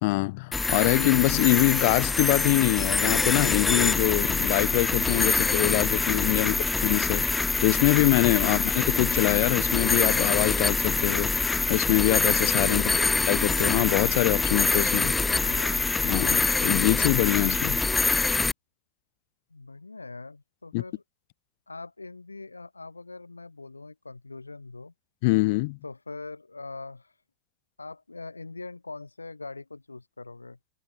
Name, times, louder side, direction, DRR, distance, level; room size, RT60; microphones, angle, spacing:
voice 1, 0.0-6.5 6.8-12.9 13.3-15.1 16.0-17.8 20.7-20.8 25.2-25.8, left 25 dB, 50° left, 1.4 m, -24 dB
sound 1, 0.5-18.5, left 3 dB, 10° left, 0.5 m, -25 dB
voice 2, 12.7-13.1 15.2-15.8 19.5-21.0 21.7-24.9 25.8-27.1 27.8-30.6, left 3 dB, 80° left, 5.7 m, -42 dB
figure-of-eight pair, 90°, 0 cm